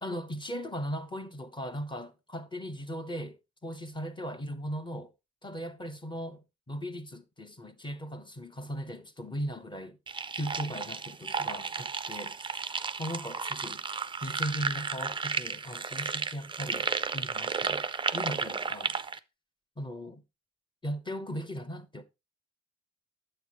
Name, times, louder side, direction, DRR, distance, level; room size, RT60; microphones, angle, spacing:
voice 1, 0.0-5.1 5.4-10.0 10.3-12.7 13.0-13.8 14.2-16.9 17.1-17.8 18.1-19.0 19.8-20.2 20.8-22.0, equal, 15° left, 1.0 m, -38 dB
sound 1, 10.1-19.2, right 5 dB, 15° right, 0.4 m, -33 dB
9.2 x 7.6 x 2.9 m
cardioid pair, 90°, 30 cm